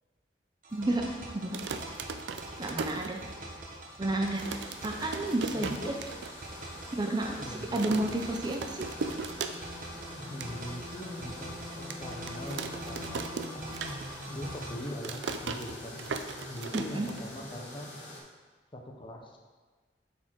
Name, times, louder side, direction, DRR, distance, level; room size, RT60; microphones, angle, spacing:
sound 1, 0.6-14.7, right 1 dB, 50° right, 1.1 m, -44 dB
voice 1, 0.7-1.1 1.3-1.6 2.6-3.2 4.0-4.4 4.8-6.0 6.9-8.9 16.7-17.1, right 2 dB, 25° right, 3 dB, 0.5 m, -31 dB
sound 2, 1.4-3.7 4.0-4.1 4.3-6.3 6.7-6.8 7.0-7.4 7.8-9.9 10.2-10.5 11.0-11.1 11.9-14.3 14.6-17.6, right 4 dB, 85° right, 0.5 m, -38 dB
sound 3, 4.3-18.2, left 1 dB, 85° left, 1.8 m, -45 dB
voice 2, 5.5-6.1 7.4-8.1 10.2-13.3 13.5-16.1 16.5-18.0 18.7-19.4, left 1 dB, 30° left, 2 dB, 0.9 m, -42 dB
7.8 x 4.4 x 4.6 m, 1.4 s
head